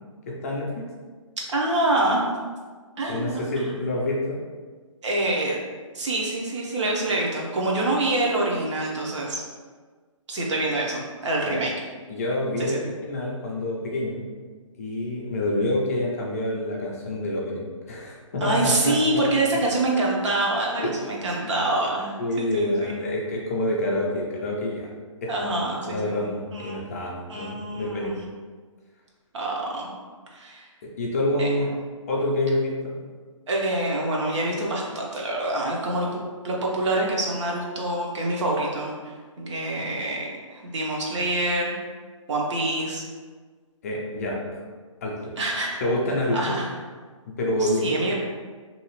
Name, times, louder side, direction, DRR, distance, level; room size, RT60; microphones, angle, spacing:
voice 1, 0.3-0.9 3.1-4.4 11.5-11.6 12.1-14.2 14.8-19.5 20.8-20.9 21.3-21.5 22.2-24.9 25.2-25.3 25.8-28.1 30.8-31.7 32.1-32.9 43.8-44.6 45.0-45.3 45.8-46.6 47.3-48.0, left 1 dB, 30° left, -3 dB, 0.4 m, -27 dB
voice 2, 1.5-2.2 3.0-3.7 5.0-5.6 5.9-9.4 10.3-11.7 12.6-12.8 18.4-23.0 25.3-26.2 26.5-26.8 27.3-28.2 29.3-29.9 30.3-30.7 31.4-31.5 33.5-36.1 36.4-41.8 42.3-43.0 45.4-45.8 46.3-46.7 47.6-48.1, right 2 dB, 60° right, -2 dB, 0.8 m, -26 dB
2.7 x 2.3 x 3.0 m, 1.5 s
hypercardioid pair, 155°, 17 cm